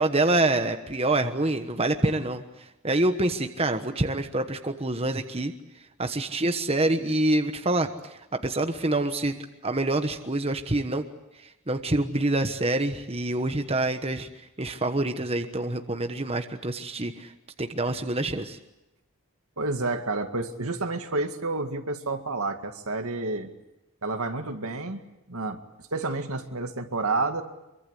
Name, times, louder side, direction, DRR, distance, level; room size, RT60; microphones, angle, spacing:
voice 1, 0.0-5.5 6.0-11.0 11.7-14.3 14.6-17.3 17.6-18.6, right 2 dB, 25° right, 7 dB, 1.2 m, -26 dB
voice 2, 19.6-23.5 24.0-25.0 25.3-25.6 25.9-27.4, right 3 dB, 75° right, 6 dB, 2.2 m, -29 dB
25.5 x 23.5 x 8.3 m, 0.94 s
head